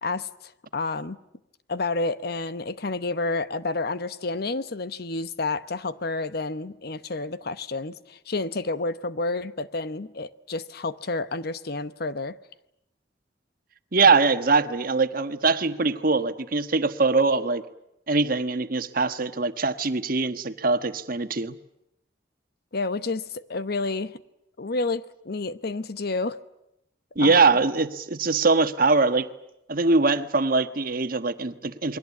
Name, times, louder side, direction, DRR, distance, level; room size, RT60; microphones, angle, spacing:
voice 1, 0.0-1.2 1.7-12.4 22.7-24.2 24.6-26.4 27.2-27.5, left 3 dB, 60° left, 1.0 m, -30 dB
voice 2, 13.9-17.6 18.1-21.6 27.1-29.3 29.7-32.0, right 3 dB, 50° right, 1.3 m, -22 dB
28.5 x 22.5 x 8.4 m
head